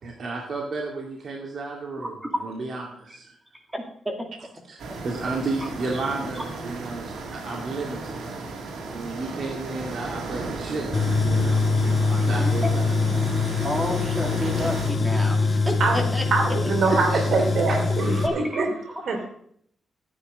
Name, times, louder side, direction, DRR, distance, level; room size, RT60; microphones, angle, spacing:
voice 1, 0.0-3.4 4.7-8.3 8.9-12.9 16.8-17.3 18.0-19.3, right 3 dB, 50° right, -1 dB, 2.4 m, -33 dB
voice 2, 3.7-4.3 12.2-12.5 13.6-16.2 16.6-16.7 18.2-19.0, equal, 15° right, 2 dB, 2.3 m, -30 dB
sound 1, 4.8-14.9, right 3 dB, 90° right, 2.7 m, -34 dB
Tools, 10.9-18.3, left 4 dB, 30° left, 1.4 m, -24 dB
voice 3, 16.3-18.7 19.1-19.2, right 4 dB, 65° right, 3 dB, 2.9 m, -24 dB
13.5 x 10.0 x 5.3 m, 0.66 s
wide cardioid pair, 140°, 0 cm